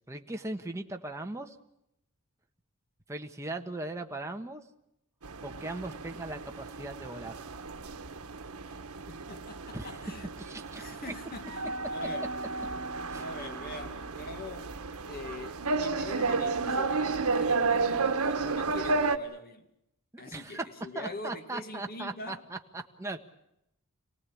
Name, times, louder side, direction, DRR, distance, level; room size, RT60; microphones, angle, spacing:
voice 1, 0.1-1.5 3.1-4.6 5.4-7.4 9.7-10.0 10.4-10.9 13.1-13.3 18.4-18.6 20.1-20.7 20.9-23.2, right 2 dB, 15° right, 1.4 m, -39 dB
sound 1, 5.2-19.2, right 4 dB, 90° right, 1.3 m, -32 dB
voice 2, 8.6-10.3 10.8-11.5 11.9-12.3 13.2-19.7 20.2-22.4, left 2 dB, 45° left, 2.1 m, -44 dB
27.5 x 18.0 x 8.6 m
head